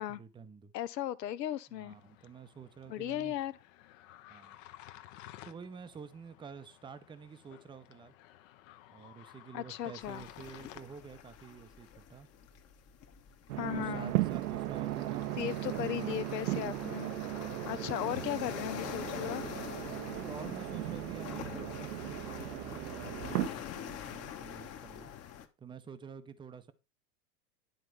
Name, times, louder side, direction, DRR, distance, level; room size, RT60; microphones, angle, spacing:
voice 1, 0.0-0.7 1.7-3.4 4.3-4.6 5.4-8.1 8.9-12.3 13.7-16.1 20.0-25.1 25.6-26.7, right 6 dB, 10° right, 0.6 m, -49 dB
voice 2, 0.7-2.0 2.9-3.5 9.5-10.2 13.6-14.1 15.4-17.1 17.6-19.4, left 12 dB, 80° left, 0.7 m, -36 dB
sound 1, 1.9-11.2, left 14 dB, 55° left, 0.9 m, -55 dB
sound 2, 10.0-25.4, left 9 dB, 30° left, 1.0 m, -45 dB
sound 3, 13.5-23.5, right 16 dB, 70° right, 0.7 m, -37 dB
10.0 x 4.0 x 4.6 m
hypercardioid pair, 100°, 48 cm